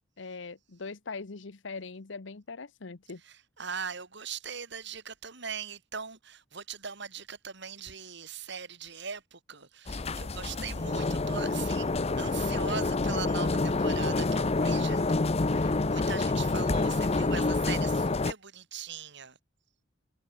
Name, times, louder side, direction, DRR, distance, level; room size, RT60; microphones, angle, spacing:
voice 1, 0.0-3.2, left 4 dB, 75° left, 1.0 m, -41 dB
voice 2, 3.2-11.9 12.2-19.4, right 6 dB, 65° right, 3.9 m, -40 dB
sound 1, 9.9-18.3, left 3 dB, 35° left, 0.7 m, -28 dB
head